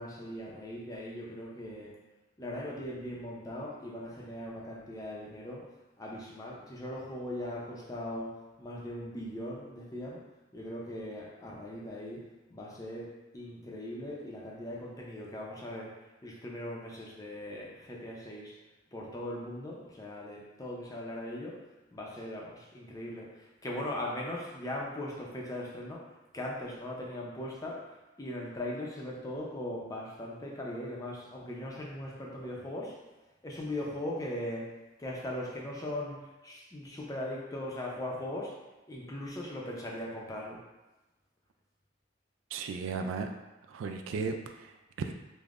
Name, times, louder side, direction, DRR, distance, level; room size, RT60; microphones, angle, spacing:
voice 1, 0.0-1.9 2.4-5.7 6.0-10.2 10.5-15.9 16.2-18.5 18.9-21.6 21.9-26.0 26.3-27.8 28.2-33.0 33.4-34.7 35.0-38.6 38.9-40.6, left 1 dB, 20° left, -2 dB, 0.5 m, -39 dB
voice 2, 42.5-43.3 43.7-45.1, right 5 dB, 85° right, 6 dB, 0.3 m, -35 dB
5.1 x 2.1 x 2.4 m, 1.1 s
head